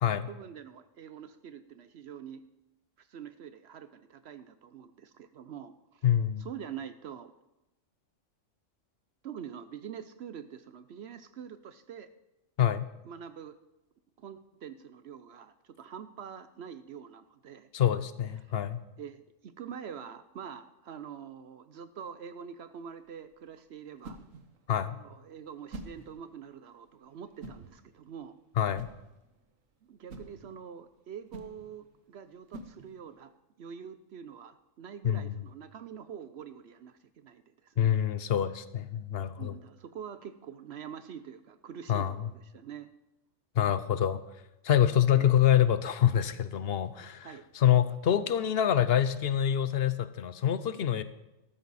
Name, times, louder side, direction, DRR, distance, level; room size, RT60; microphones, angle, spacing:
voice 1, 0.3-2.4 3.0-6.1 6.4-7.3 9.2-12.1 13.0-13.6 14.2-17.7 18.4-18.5 19.0-24.2 24.8-28.4 29.8-33.3 33.6-38.0 39.4-42.9 45.1-45.4 47.2-47.4, right 8 dB, 65° right, 12 dB, 0.8 m, -45 dB
voice 2, 6.0-6.5 12.6-12.9 17.7-18.8 24.7-25.0 28.6-28.9 35.0-35.3 37.8-39.6 41.9-42.3 43.6-44.2 44.6-47.3 47.5-51.0, left 10 dB, 60° left, 13 dB, 0.8 m, -26 dB
sound 1, 22.7-33.3, right 2 dB, 85° right, 1.5 m, -50 dB
13.0 x 13.0 x 4.1 m, 0.95 s
omnidirectional pair, 1.3 m